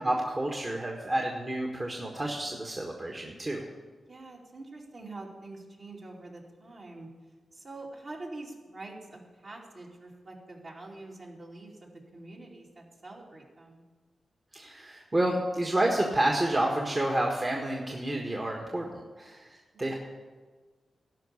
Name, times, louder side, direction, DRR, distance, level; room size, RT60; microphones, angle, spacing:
voice 1, 0.0-3.6 14.5-19.9, right 1 dB, 35° right, 0 dB, 1.5 m, -29 dB
voice 2, 4.1-7.1 7.5-13.9 19.7-20.0, right 2 dB, 55° right, -3 dB, 2.7 m, -45 dB
12.5 x 5.4 x 8.4 m, 1.4 s
supercardioid pair, 40°, 0 cm